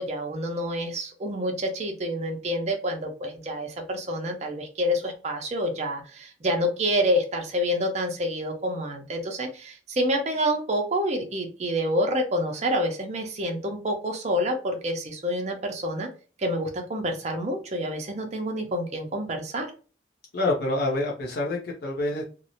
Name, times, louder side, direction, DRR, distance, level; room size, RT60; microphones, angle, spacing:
voice 1, 0.0-16.1 16.4-19.7, equal, 35° right, 3 dB, 0.5 m, -28 dB
voice 2, 20.3-22.3, left 2 dB, 55° left, -2 dB, 0.5 m, -27 dB
2.5 x 2.0 x 2.8 m, 0.37 s
head